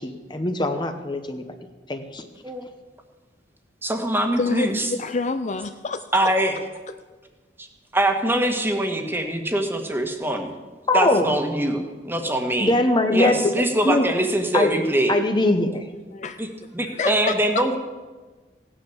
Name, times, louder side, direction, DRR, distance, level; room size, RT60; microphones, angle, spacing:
voice 1, 0.0-1.6 1.9-2.3 10.9-11.3 12.6-13.5 13.8-14.1 14.5-14.7 15.1-15.9, left 1 dB, 25° left, 7 dB, 0.9 m, -22 dB
voice 2, 3.8-4.9 6.1-6.5 7.6-7.7 7.9-10.5 10.9-12.7 13.1-15.1 16.4-16.5 16.7-17.8, right 1 dB, 15° right, 4 dB, 1.6 m, -23 dB
voice 3, 4.4-6.1 16.1-16.4 16.9-17.6, left 4 dB, 45° left, 9 dB, 0.6 m, -27 dB
16.0 x 9.9 x 7.1 m, 1.3 s
head